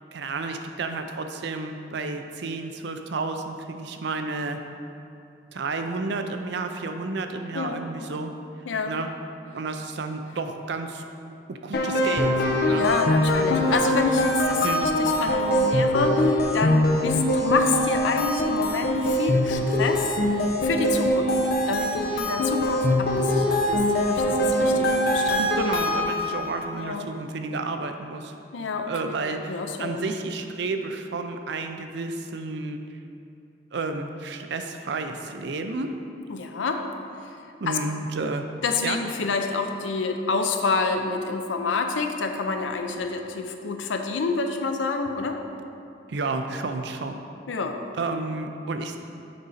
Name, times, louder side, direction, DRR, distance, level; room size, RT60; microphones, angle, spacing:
voice 1, 0.1-4.6 5.5-8.3 8.8-9.1 9.5-11.0 11.5-12.9 14.6-14.9 25.4-28.3 28.9-32.8 33.7-35.9 37.6-38.4 38.8-39.0 46.1-47.2 48.0-49.0, right 3 dB, 65° right, 6 dB, 0.5 m, -31 dB
voice 2, 7.5-8.1 8.7-8.9 12.7-20.1 20.6-21.4 21.7-25.4 26.7-27.1 28.5-29.2 29.5-30.0 36.3-36.8 37.7-37.8 38.6-45.4 47.5-47.8, left 4 dB, 90° left, 5 dB, 0.6 m, -28 dB
sound 1, 11.7-26.4, left 1 dB, 60° left, 0.8 m, -23 dB
6.7 x 5.0 x 4.1 m, 2.7 s
head